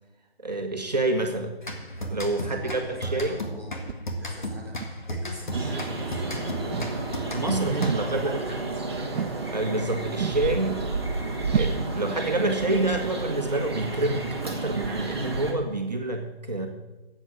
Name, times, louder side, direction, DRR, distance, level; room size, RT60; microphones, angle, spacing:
voice 1, 0.4-1.5 2.1-3.4 6.8-8.6 9.5-10.8 11.5-16.7, right 2 dB, 40° right, 3 dB, 1.4 m, -27 dB
sound 1, 1.6-8.3, equal, 50° left, 1.9 m, -34 dB
voice 2, 2.0-3.9 4.2-6.8 7.3-8.9, equal, 10° left, -6 dB, 1.7 m, -43 dB
sound 2, 3.0-3.1 3.9-4.0 4.8-4.9 5.5-5.7 6.7-7.0 7.7-8.1 9.1-9.4 10.2-10.5 11.5-11.8, right 7 dB, 80° right, 0.5 m, -30 dB
sound 3, 5.5-15.5, right 3 dB, 25° right, 1.5 m, -31 dB
13.5 x 8.1 x 5.9 m, 1.1 s
figure-of-eight pair, 175°, 31 cm